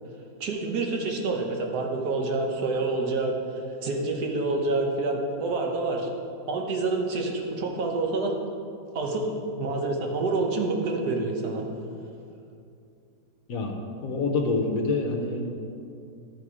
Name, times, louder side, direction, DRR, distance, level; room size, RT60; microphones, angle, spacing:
voice 1, 0.4-6.1 6.5-8.3 8.9-11.7, right 3 dB, 70° right, 1 dB, 1.4 m, -27 dB
voice 2, 14.0-15.5, left 3 dB, 65° left, 2 dB, 1.1 m, -26 dB
11.5 x 4.3 x 4.8 m, 2.5 s
omnidirectional pair, 1.8 m